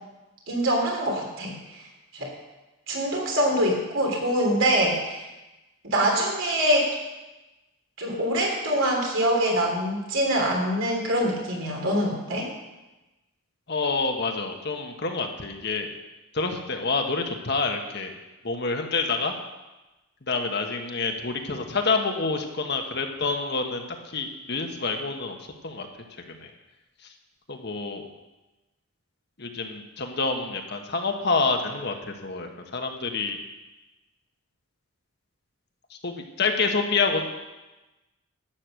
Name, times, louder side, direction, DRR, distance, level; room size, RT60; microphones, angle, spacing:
voice 1, 0.5-1.8 2.1-2.3 2.9-5.3 5.8-6.9 8.0-12.5, right 1 dB, 65° right, 0 dB, 3.4 m, -24 dB
voice 2, 13.7-15.9 16.3-18.1 18.4-19.3 20.3-25.4 25.6-25.9 26.3-26.5 27.0-27.1 27.5-28.0 29.4-33.4 35.9-37.2, left 4 dB, 50° left, 4 dB, 1.3 m, -27 dB
12.0 x 8.7 x 6.4 m, 1.1 s
head